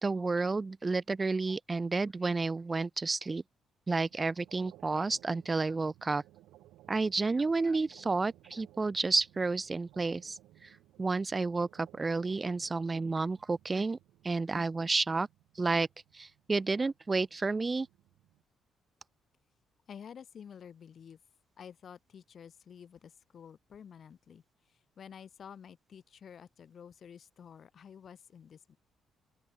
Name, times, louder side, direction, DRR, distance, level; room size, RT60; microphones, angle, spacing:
voice 1, 0.0-3.4 3.9-6.2 6.9-10.7 11.0-14.0 14.2-15.3 15.6-15.9 16.1-17.9, right 3 dB, 25° right, 1.5 m, -31 dB
sound 1, 4.1-18.4, right 15 dB, 90° right, 6.7 m, -60 dB
voice 2, 19.9-21.2 21.6-28.8, left 7 dB, 55° left, 7.3 m, -51 dB
open air
cardioid pair, 90°, 0 cm